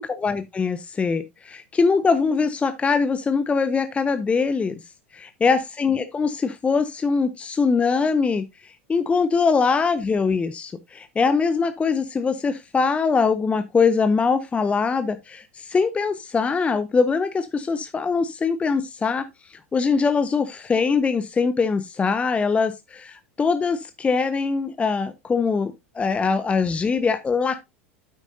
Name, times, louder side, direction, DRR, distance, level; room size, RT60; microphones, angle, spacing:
voice 1, 0.0-4.8 5.1-27.6, left 5 dB, 20° left, 0.6 m, -22 dB
9.2 x 8.2 x 2.7 m
figure-of-eight pair, 85°, 7 cm